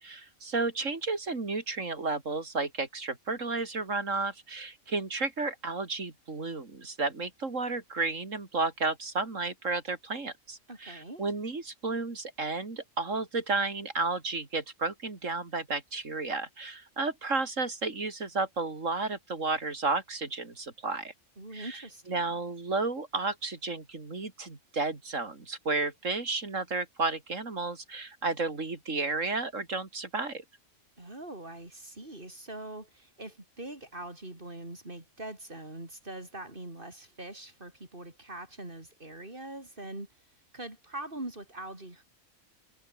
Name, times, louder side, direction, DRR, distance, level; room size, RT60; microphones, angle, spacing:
voice 1, 0.0-21.1 21.5-30.4, right 3 dB, 65° right, 3.5 m, -32 dB
voice 2, 10.7-11.3 21.4-22.4 31.0-42.0, right 1 dB, 40° right, 5.3 m, -43 dB
omnidirectional pair, 1.4 m